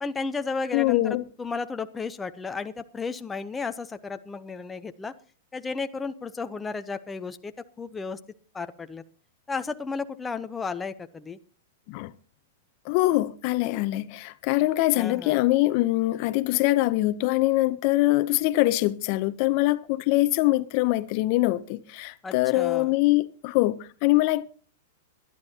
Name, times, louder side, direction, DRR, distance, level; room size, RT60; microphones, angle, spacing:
voice 1, 0.0-5.1 5.5-7.5 7.8-8.2 8.5-9.0 9.5-11.4 15.0-15.4 22.2-22.9, left 4 dB, 10° left, 0.6 m, -33 dB
voice 2, 0.7-1.2 11.9-12.1 12.9-24.4, left 18 dB, 45° left, 0.6 m, -23 dB
25.0 x 11.0 x 2.8 m
supercardioid pair, 140°, 0 cm